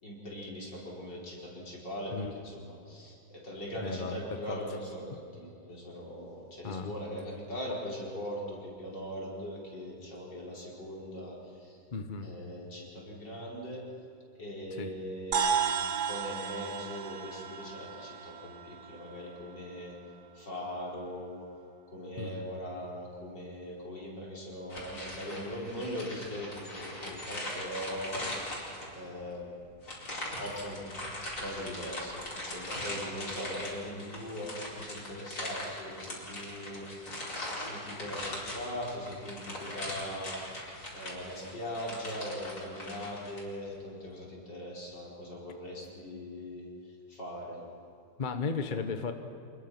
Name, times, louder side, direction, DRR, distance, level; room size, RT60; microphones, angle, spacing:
voice 1, 0.0-11.8 12.2-13.9 14.4-20.0 20.3-21.5 21.9-28.6 28.9-29.6 30.4-30.9 31.4-37.4 37.6-40.4 40.9-46.7 47.1-47.6, equal, 75° left, -3 dB, 5.4 m, -40 dB
voice 2, 3.8-4.2 4.5-4.6 6.6-6.9 11.9-12.3 14.7-14.9 22.2-22.4 48.2-49.1, left 4 dB, 30° left, 8 dB, 1.0 m, -35 dB
sound 1, 15.3-19.9, right 7 dB, 60° right, 1.6 m, -34 dB
sound 2, 24.7-29.1 29.8-43.4, left 1 dB, 55° left, 5.1 m, -40 dB
26.5 x 21.0 x 6.1 m, 2.7 s
omnidirectional pair, 1.9 m